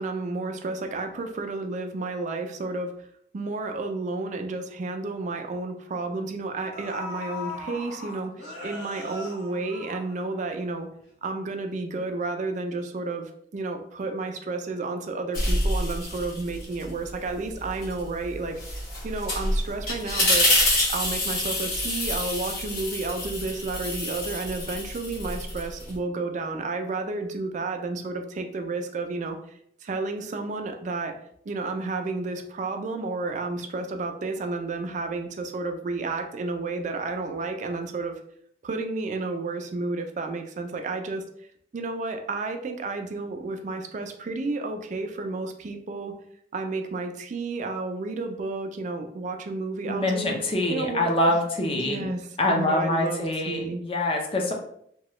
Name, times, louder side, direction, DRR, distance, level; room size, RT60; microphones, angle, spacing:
voice 1, 0.0-2.9 3.3-10.9 11.2-20.5 20.9-29.4 29.8-31.1 31.5-38.2 38.6-41.2 41.7-46.1 46.5-50.4 50.7-51.4 51.7-53.8, right 3 dB, 45° right, 5 dB, 0.4 m, -31 dB
sound 1, 6.2-6.3 6.7-10.6 11.0-11.1, left 2 dB, 70° left, 0.7 m, -39 dB
sound 2, 15.3-16.9 17.3-26.0, left 1 dB, 50° left, 1.3 m, -27 dB
voice 2, 49.9-52.1 52.4-54.5, left 1 dB, 30° left, 1 dB, 0.5 m, -25 dB
2.9 x 2.2 x 3.0 m, 0.69 s
head